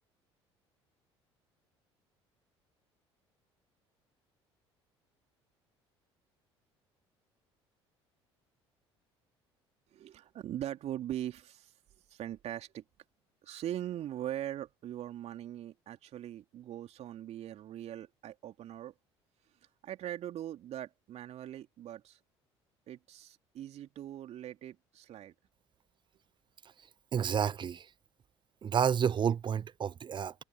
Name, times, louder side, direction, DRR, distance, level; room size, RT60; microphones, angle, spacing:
voice 1, 9.9-11.7 12.1-12.8 13.4-18.9 19.8-22.2 22.9-25.3, right 12 dB, 50° right, 3.1 m, -41 dB
voice 2, 27.1-27.9 28.6-30.3, right 8 dB, 35° right, 0.9 m, -30 dB
figure-of-eight pair, 60°, 14 cm